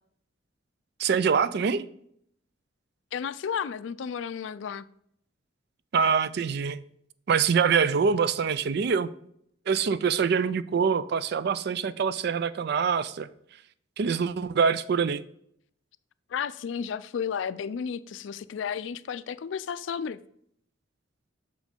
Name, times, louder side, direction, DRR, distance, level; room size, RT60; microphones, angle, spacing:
voice 1, 1.0-1.9 5.9-6.8 7.3-9.1 9.7-13.3 14.0-15.2, right 6 dB, 55° right, 0.4 m, -24 dB
voice 2, 3.1-4.9 16.3-20.2, left 7 dB, 75° left, 0.4 m, -33 dB
6.3 x 5.1 x 5.1 m
head